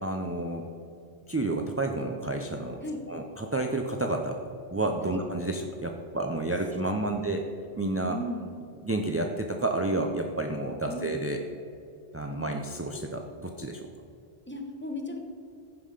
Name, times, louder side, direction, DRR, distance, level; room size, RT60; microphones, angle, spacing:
voice 1, 0.0-0.7 1.3-4.4 4.7-7.4 7.8-8.2 8.8-11.4 12.1-13.9, right 2 dB, 20° right, 3 dB, 0.4 m, -30 dB
voice 2, 8.1-8.5 10.9-11.2 12.3-12.6 14.5-15.2, left 1 dB, 10° left, 3 dB, 1.0 m, -36 dB
15.0 x 5.6 x 5.0 m, 2.5 s
omnidirectional pair, 1.2 m